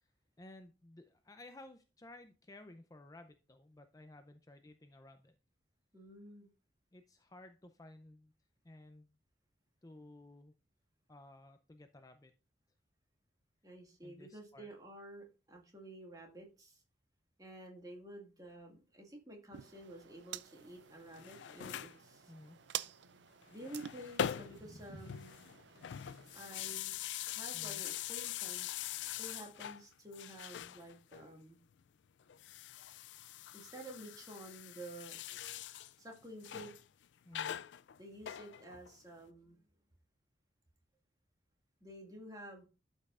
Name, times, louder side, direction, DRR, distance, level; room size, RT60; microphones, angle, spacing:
voice 1, 0.4-5.4 6.9-8.3 8.6-9.2 9.8-10.6 11.1-12.3 14.0-14.7 22.3-22.6 27.5-27.8 37.3-37.5, left 1 dB, 20° left, 7 dB, 0.5 m, -55 dB
voice 2, 5.9-6.5 13.6-16.8 17.4-22.3 23.5-25.4 26.3-26.9 27.3-28.8 29.2-31.6 33.5-35.4 36.0-36.7 38.0-39.6 41.8-42.6, right 1 dB, 20° right, 1 dB, 2.0 m, -51 dB
sound 1, 19.5-26.8, right 11 dB, 75° right, 0.5 m, -49 dB
sound 2, 21.0-22.0 23.4-24.7 25.0-29.8 30.1-31.2 32.3-35.9 36.4-36.8 37.3-38.9, left 10 dB, 75° left, 0.4 m, -43 dB
sound 3, 23.8-29.8, equal, 55° right, 3.4 m, -61 dB
12.5 x 5.3 x 2.5 m, 0.33 s
head